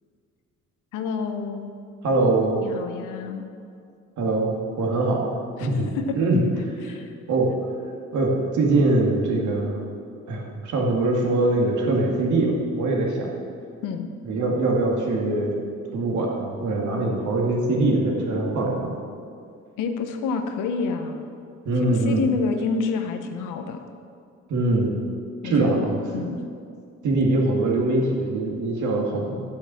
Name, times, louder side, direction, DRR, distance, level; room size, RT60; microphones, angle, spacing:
voice 1, 0.9-1.7 2.6-3.4 5.6-6.2 6.8-7.1 13.8-14.1 19.8-21.2 21.9-23.9 25.4-26.4, left 4 dB, 90° left, 7 dB, 1.0 m, -28 dB
voice 2, 2.0-2.6 4.2-5.3 5.6-6.4 6.9-7.0 7.3-7.5 8.1-9.8 10.3-13.3 14.3-15.5 15.9-19.0 21.7-22.2 24.5-24.9 25.4-26.0 27.0-29.4, right 2 dB, 75° right, -1 dB, 2.2 m, -23 dB
10.0 x 5.9 x 7.5 m, 2.3 s
cardioid pair, 90°, 30 cm